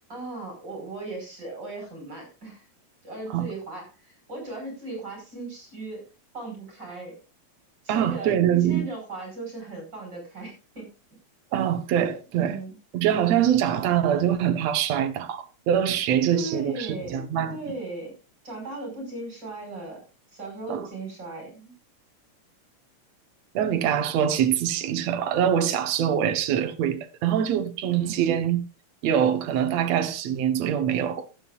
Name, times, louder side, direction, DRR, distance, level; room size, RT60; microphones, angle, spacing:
voice 1, 0.1-2.7 3.0-6.0 6.3-7.1 7.8-8.3 8.6-10.9 12.4-12.7 16.3-17.2 17.5-18.1 18.4-20.0 20.3-21.7 27.9-28.2, right 2 dB, 35° right, 6.1 m, -37 dB
voice 2, 7.9-8.8 11.5-12.6 12.9-17.5 20.7-20.8 23.5-28.6 29.0-31.3, right 9 dB, 70° right, 2.4 m, -24 dB
22.0 x 9.2 x 2.5 m
omnidirectional pair, 3.3 m